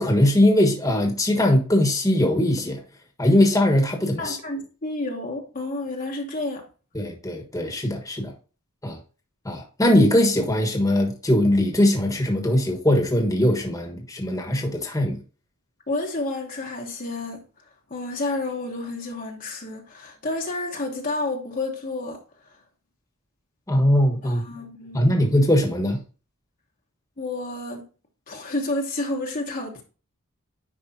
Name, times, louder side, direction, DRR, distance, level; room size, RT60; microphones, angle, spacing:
voice 1, 0.0-2.8 3.2-4.4 6.9-8.3 8.8-9.0 9.4-15.2 23.7-24.4 24.9-26.0, left 1 dB, 15° left, 1.3 m, -20 dB
voice 2, 4.2-6.7 15.9-22.6 24.2-25.3 27.2-27.8 28.3-29.8, left 2 dB, 40° left, 1.1 m, -30 dB
10.0 x 4.8 x 2.8 m
head